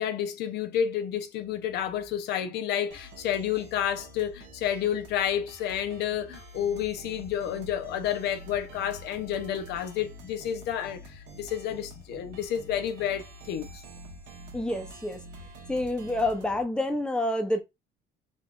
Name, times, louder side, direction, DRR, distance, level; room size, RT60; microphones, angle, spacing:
voice 1, 0.0-13.8, left 9 dB, 75° left, 0.7 m, -30 dB
sound 1, 2.9-16.6, right 1 dB, 85° right, 1.1 m, -47 dB
voice 2, 14.5-15.2 15.7-17.6, left 1 dB, 5° left, 0.6 m, -28 dB
3.7 x 3.3 x 2.4 m
cardioid pair, 110°, 17 cm